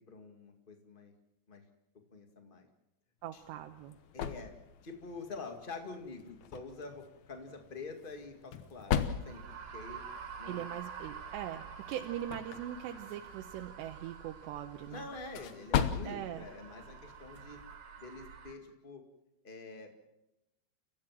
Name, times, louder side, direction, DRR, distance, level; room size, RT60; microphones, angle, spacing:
voice 1, 0.1-1.1 1.5-1.6 2.1-2.7 3.3-3.4 4.1-4.5 4.8-10.0 10.4-10.6 14.9-17.6 18.0-19.0 19.4-20.0, left 3 dB, 55° left, 5 dB, 0.5 m, -46 dB
voice 2, 3.2-4.0 10.4-15.1 16.0-16.5, right 11 dB, 85° right, 5 dB, 3.1 m, -41 dB
sound 1, 3.3-17.8, left 8 dB, 75° left, 1.7 m, -40 dB
sound 2, 9.2-18.5, right 6 dB, 70° right, 4.4 m, -48 dB
30.0 x 15.5 x 7.5 m, 0.93 s
omnidirectional pair, 4.9 m